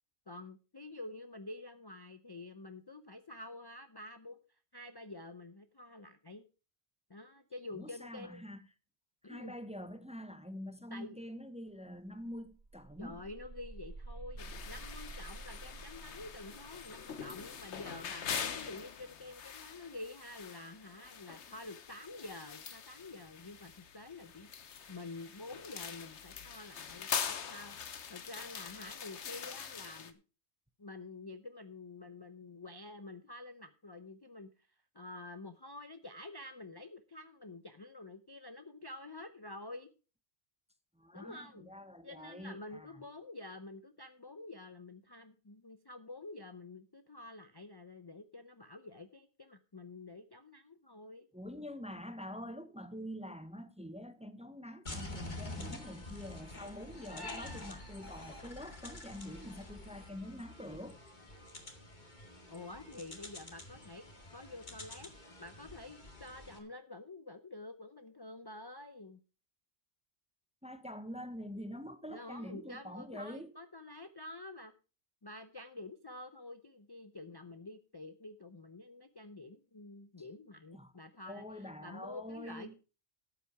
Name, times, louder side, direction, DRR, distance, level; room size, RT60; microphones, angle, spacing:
voice 1, 0.3-4.4 4.7-6.4 7.1-8.4 9.2-9.5 10.9-11.2 13.0-27.8 28.1-30.2 30.8-34.7 34.9-39.9 41.1-41.7 42.0-51.3 62.5-64.0 64.3-65.1 65.4-69.2 72.1-74.7 75.2-82.7, left 2 dB, 25° left, 0.6 m, -48 dB
voice 2, 7.7-8.6 9.2-13.2 40.9-43.1 51.3-61.0 70.6-73.5 80.7-80.9 81.3-82.8, equal, 5° right, 0.9 m, -46 dB
sound 1, 11.7-11.8 12.1-18.9, right 3 dB, 45° right, 1.7 m, -51 dB
sound 2, 14.4-30.1, left 7 dB, 85° left, 1.3 m, -43 dB
sound 3, 54.9-66.6, left 2 dB, 45° left, 2.1 m, -47 dB
13.0 x 8.4 x 4.8 m
omnidirectional pair, 1.1 m